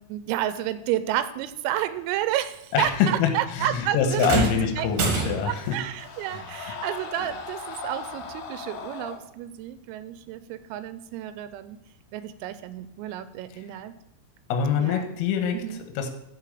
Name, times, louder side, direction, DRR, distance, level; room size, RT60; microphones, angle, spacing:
voice 1, 0.0-4.5 4.8-11.8 12.1-13.9 14.8-15.1 15.5-15.8, right 12 dB, 90° right, 12 dB, 3.3 m, -31 dB
voice 2, 2.7-5.8 14.5-15.6 16.0-16.1, left 7 dB, 85° left, 6 dB, 3.7 m, -25 dB
sound 1, 4.2-5.7 7.2-7.3 8.2-8.3, right 3 dB, 60° right, 2.2 m, -27 dB
sound 2, 4.7-9.2, left 5 dB, 70° left, 3.4 m, -39 dB
14.5 x 5.5 x 4.9 m, 0.82 s
omnidirectional pair, 6.0 m